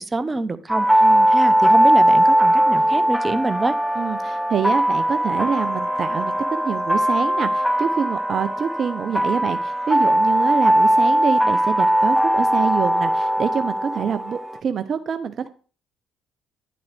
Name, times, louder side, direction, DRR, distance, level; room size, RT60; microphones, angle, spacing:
voice 1, 0.0-0.9 1.3-3.7, right 2 dB, 25° right, 1.0 m, -25 dB
sound 1, 0.7-14.6, equal, ahead, 0.5 m, -19 dB
voice 2, 4.0-15.5, right 7 dB, 50° right, 0.6 m, -26 dB
10.5 x 7.7 x 3.5 m
hypercardioid pair, 55°, 0 cm